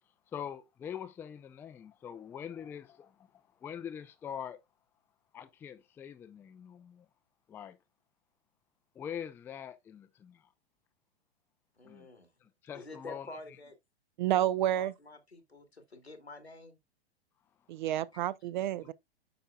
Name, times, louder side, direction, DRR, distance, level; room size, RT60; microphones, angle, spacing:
voice 1, 0.3-4.6 5.3-7.1 7.5-7.8 9.0-10.5 11.8-12.1 12.4-13.3, left 8 dB, 5° left, 0.4 m, -43 dB
voice 2, 11.8-12.3 12.7-13.7 14.7-16.8 18.1-18.2, left 2 dB, 90° left, 1.7 m, -48 dB
voice 3, 14.2-14.9 17.7-18.9, right 12 dB, 50° right, 0.5 m, -29 dB
8.9 x 5.6 x 2.3 m
figure-of-eight pair, 100°, 31 cm